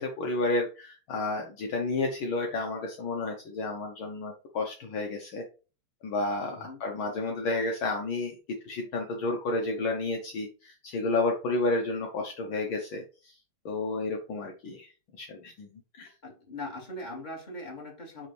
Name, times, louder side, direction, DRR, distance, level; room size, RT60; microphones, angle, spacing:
voice 1, 0.0-5.4 6.0-8.4 8.6-13.3 13.6-14.9 15.2-15.7 15.9-16.1, left 2 dB, 70° left, 2 dB, 1.2 m, -31 dB
voice 2, 6.5-6.8 16.2-18.3, left 1 dB, 15° left, -1 dB, 2.1 m, -40 dB
9.6 x 3.6 x 3.3 m, 0.34 s
omnidirectional pair, 3.5 m